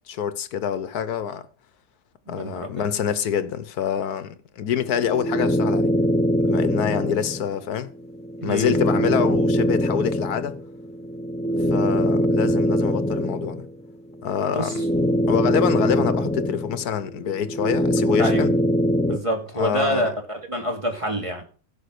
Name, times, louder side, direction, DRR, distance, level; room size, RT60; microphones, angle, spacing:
voice 1, 0.1-1.5 2.3-5.9 6.4-7.9 8.4-10.6 11.7-13.6 14.2-14.8 15.3-18.5 19.5-20.1, left 8 dB, 80° left, 1.4 m, -26 dB
voice 2, 2.3-2.9 8.4-8.8 14.5-14.7 18.2-18.5 19.1-21.5, equal, 20° right, 2.8 m, -27 dB
sound 1, 4.7-7.5 8.0-13.8 14.2-19.2, equal, 10° left, 0.5 m, -23 dB
16.0 x 5.8 x 6.6 m
omnidirectional pair, 1.6 m